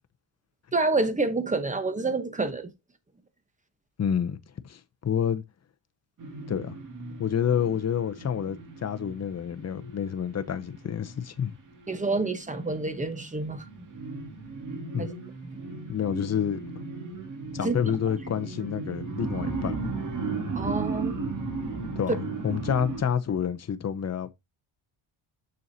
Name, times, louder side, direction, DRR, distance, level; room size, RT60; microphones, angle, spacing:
voice 1, 0.7-2.7 11.9-13.7 15.0-15.1 17.6-17.8 20.6-21.2, right 3 dB, 15° right, 1.0 m, -28 dB
voice 2, 4.0-4.4 4.6-5.4 6.5-6.8 7.2-11.5 14.9-15.1 15.9-16.6 17.5-19.9 22.0-22.2 22.4-24.3, left 8 dB, 30° left, 0.7 m, -28 dB
sound 1, 6.2-13.1 13.5-23.0, right 4 dB, 40° right, 2.2 m, -36 dB
6.9 x 6.5 x 2.7 m
cardioid pair, 125°, 49 cm